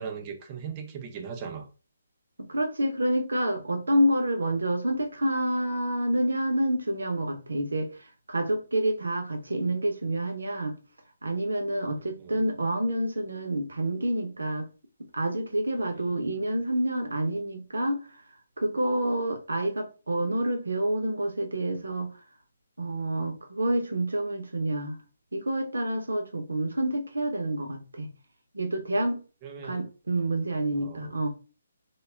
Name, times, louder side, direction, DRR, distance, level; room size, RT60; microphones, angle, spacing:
voice 1, 0.0-1.7 12.0-12.5 15.8-16.2 29.4-29.8 30.7-31.1, right 6 dB, 30° right, 0.5 m, -39 dB
voice 2, 2.4-7.9 8.3-10.7 11.2-14.7 15.1-18.0 18.6-22.1 22.8-25.0 25.3-28.1 28.5-29.2 29.6-31.3, right 1 dB, 80° right, 0.6 m, -28 dB
2.2 x 2.0 x 3.3 m
figure-of-eight pair, 140°, 0 cm